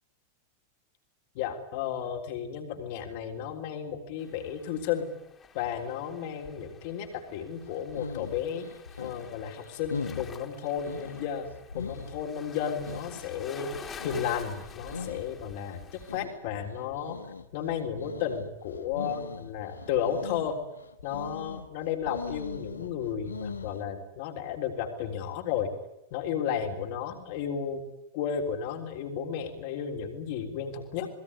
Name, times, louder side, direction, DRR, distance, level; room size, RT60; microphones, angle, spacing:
voice 1, 1.4-5.1 5.5-8.7 9.0-11.5 11.7-13.7 14.0-17.2 17.5-20.6 21.0-25.7 26.1-27.8 28.1-31.1, left 8 dB, 50° left, 4 dB, 3.5 m, -33 dB
sound 1, 4.2-16.2, left 6 dB, 20° left, 3.3 m, -49 dB
sound 2, 7.6-23.8, left 5 dB, 75° left, 1.5 m, -41 dB
28.5 x 20.5 x 9.8 m, 0.87 s
figure-of-eight pair, 90°, 0 cm